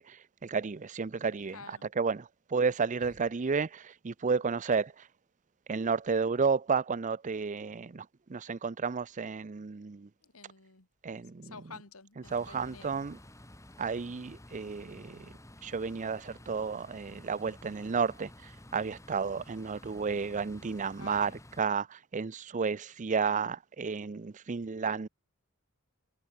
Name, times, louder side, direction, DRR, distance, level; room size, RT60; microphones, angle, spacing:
voice 1, 0.0-5.1 5.7-10.1 11.0-11.6 12.3-13.2 13.8-15.3 15.6-21.3 21.6-25.1, right 5 dB, 35° right, 0.5 m, -32 dB
voice 2, 1.5-1.9 10.2-10.9 11.4-12.9 21.0-21.4, left 4 dB, 75° left, 2.7 m, -49 dB
sound 1, 12.2-21.6, left 1 dB, 15° left, 2.6 m, -52 dB
head